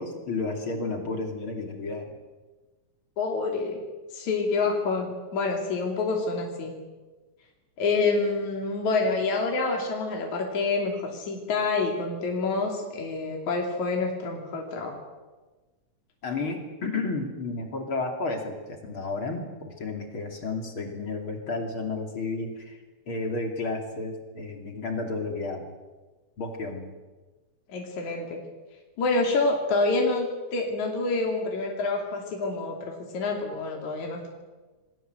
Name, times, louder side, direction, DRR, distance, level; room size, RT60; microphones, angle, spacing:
voice 1, 0.0-2.1 16.2-22.8 23.1-25.7 26.4-26.9, left 3 dB, 40° left, 4 dB, 3.3 m, -32 dB
voice 2, 3.2-3.8 4.1-6.8 7.8-14.9 27.7-28.4 29.0-34.3, left 3 dB, 65° left, 1 dB, 4.3 m, -27 dB
27.0 x 21.0 x 7.9 m, 1.2 s
omnidirectional pair, 3.6 m